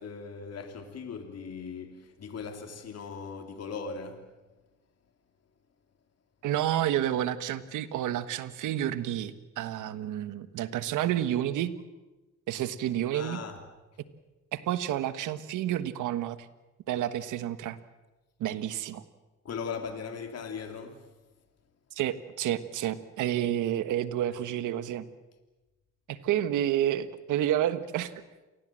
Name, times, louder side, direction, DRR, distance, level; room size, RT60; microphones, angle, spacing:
voice 1, 0.0-4.4 13.1-13.6 19.4-21.1, left 5 dB, 55° left, 3.3 m, -39 dB
voice 2, 6.4-11.7 12.5-13.4 14.5-16.4 16.9-17.8 18.4-19.0 21.9-25.1 26.1-28.1, right 11 dB, 85° right, 1.4 m, -30 dB
28.5 x 19.5 x 7.6 m
cardioid pair, 90°, 30 cm